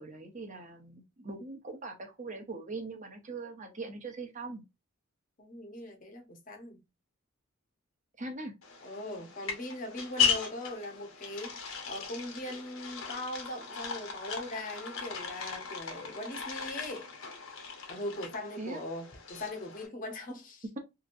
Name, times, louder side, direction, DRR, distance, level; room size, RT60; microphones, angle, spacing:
voice 1, 0.0-4.6 8.2-8.5 18.6-18.9, right 3 dB, 35° right, 0.8 m, -41 dB
voice 2, 5.4-6.8 8.8-17.1 17.9-20.6, left 1 dB, 40° left, 0.7 m, -40 dB
sound 1, 8.6-19.9, left 6 dB, 65° left, 0.9 m, -37 dB
2.9 x 2.6 x 2.5 m
head